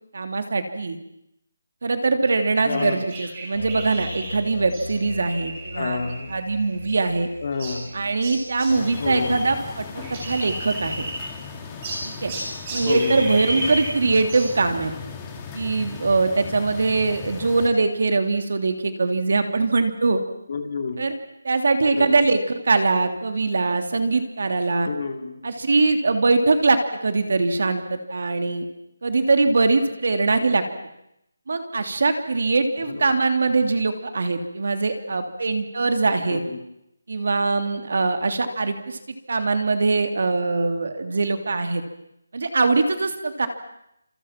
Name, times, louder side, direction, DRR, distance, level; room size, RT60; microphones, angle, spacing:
voice 1, 0.1-1.0 1.8-6.0 6.3-7.3 7.9-11.1 12.0-12.3 12.7-14.9 15.5-20.2 21.0-21.1 21.4-24.9 25.4-28.6 29.0-30.6 31.5-36.4 37.1-39.0 39.3-41.8 42.3-43.5, right 3 dB, 45° right, 7 dB, 3.0 m, -22 dB
voice 2, 2.6-3.0 5.7-6.3 7.4-7.9 9.0-9.4 12.8-13.4 20.5-21.0 21.9-22.2 24.9-25.4 30.3-30.4 32.9-33.1 36.3-36.6, left 4 dB, 30° left, 5 dB, 2.8 m, -29 dB
sound 1, 2.7-9.5 9.8-11.5 11.8-14.5, right 1 dB, 20° right, 6.8 m, -34 dB
sound 2, 3.5-10.1, left 2 dB, 65° left, 2.8 m, -40 dB
sound 3, 8.7-17.7, left 5 dB, 10° left, 2.2 m, -37 dB
29.0 x 27.5 x 6.0 m, 0.81 s
hypercardioid pair, 180°, 0 cm